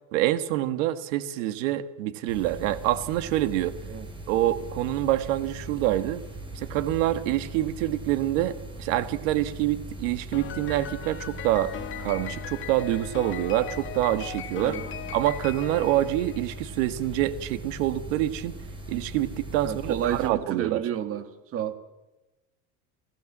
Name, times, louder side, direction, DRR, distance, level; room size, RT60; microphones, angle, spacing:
voice 1, 0.1-3.8 4.3-6.2 6.6-11.7 12.0-14.8 15.1-18.5 18.9-20.9, right 14 dB, 80° right, 1.7 m, -26 dB
sound 1, 2.3-20.3, right 1 dB, 10° right, 5.0 m, -40 dB
Piano, 10.3-16.8, left 10 dB, 30° left, 1.7 m, -39 dB
voice 2, 19.6-21.8, right 10 dB, 35° right, 2.0 m, -30 dB
28.0 x 15.5 x 7.4 m
supercardioid pair, 140°, 38 cm